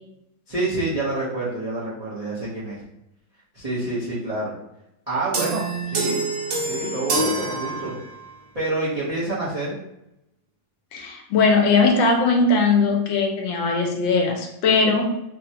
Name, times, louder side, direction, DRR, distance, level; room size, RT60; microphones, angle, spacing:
voice 1, 0.5-2.8 3.5-4.5 5.1-6.2 6.7-7.9 8.5-9.8, right 2 dB, 45° right, -9 dB, 0.4 m, -27 dB
sound 1, 5.3-8.3, right 2 dB, 60° right, 0.9 m, -26 dB
voice 2, 10.9-15.1, left 4 dB, 80° left, 2 dB, 1.3 m, -19 dB
3.9 x 2.1 x 2.8 m, 0.84 s
omnidirectional pair, 2.1 m